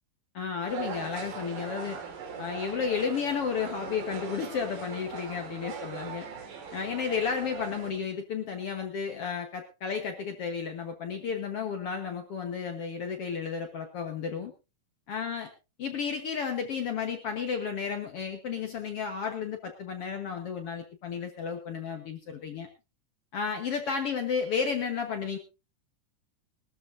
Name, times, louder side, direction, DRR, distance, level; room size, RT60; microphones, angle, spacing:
voice 1, 0.3-2.0 2.4-6.3 6.7-14.5 15.1-15.5 15.8-22.7 23.3-25.4, left 6 dB, 55° left, 5 dB, 1.9 m, -32 dB
sound 1, 0.7-7.9, right 6 dB, 85° right, 3.6 m, -40 dB
22.0 x 13.0 x 2.6 m, 0.28 s
omnidirectional pair, 3.7 m